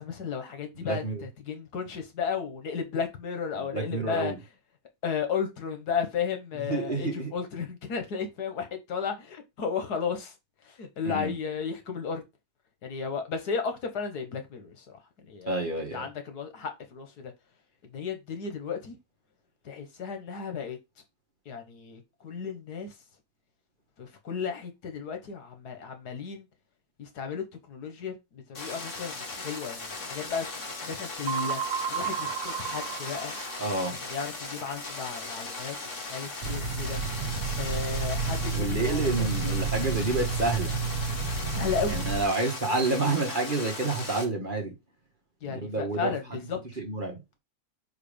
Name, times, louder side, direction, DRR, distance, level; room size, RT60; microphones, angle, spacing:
voice 1, 0.0-4.3 5.0-10.3 10.6-12.2 12.8-15.0 15.3-15.6 15.9-17.3 17.9-19.0 19.7-20.8 21.5-22.9 24.0-26.5 27.0-30.5 30.8-31.6 31.9-33.3 33.9-37.0 37.6-39.7 41.5-42.0 45.4-46.2 46.5-46.6, left 6 dB, 80° left, 1.8 m, -34 dB
voice 2, 0.8-1.2 3.6-4.4 6.5-7.3 11.0-11.3 15.5-16.1 33.6-34.0 38.5-40.7 41.9-44.7 45.5-46.1 46.8-47.2, right 3 dB, 30° right, 1.8 m, -29 dB
sound 1, 28.5-44.2, left 3 dB, 50° left, 2.0 m, -38 dB
sound 2, 31.3-33.9, right 8 dB, 90° right, 0.5 m, -33 dB
sound 3, 36.4-42.2, right 4 dB, 70° right, 1.5 m, -30 dB
5.0 x 4.7 x 5.1 m
omnidirectional pair, 1.7 m